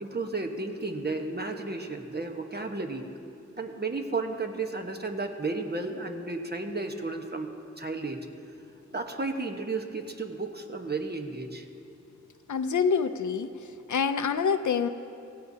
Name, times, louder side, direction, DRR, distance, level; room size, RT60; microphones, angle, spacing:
voice 1, 0.0-3.0 3.6-8.3 8.9-11.6, right 3 dB, 35° right, 4 dB, 1.2 m, -33 dB
voice 2, 12.5-13.5 13.9-14.9, left 6 dB, 85° left, 11 dB, 0.5 m, -26 dB
17.5 x 15.5 x 2.8 m, 2.6 s
wide cardioid pair, 55°, 29 cm